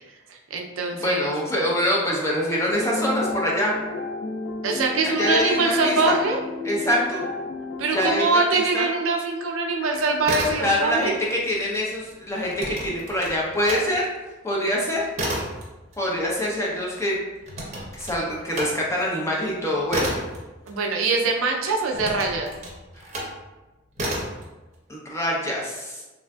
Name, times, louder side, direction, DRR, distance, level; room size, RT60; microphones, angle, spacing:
voice 1, 0.5-1.3 4.6-6.4 7.8-11.2 20.7-22.5, right 3 dB, 85° right, 1 dB, 0.4 m, -23 dB
voice 2, 1.0-3.7 5.0-6.1 6.6-7.2 7.9-8.8 10.6-14.1 14.4-15.1 16.0-17.2 17.9-20.1 24.9-26.0, equal, 15° left, -4 dB, 0.5 m, -25 dB
sound 1, 2.7-8.2, left 3 dB, 80° left, 0.4 m, -30 dB
sound 2, 10.1-11.1 11.4-13.8 14.2-21.3 21.9-23.4 23.9-24.4, right 1 dB, 35° right, 0.7 m, -32 dB
3.3 x 2.5 x 2.2 m, 1.1 s
head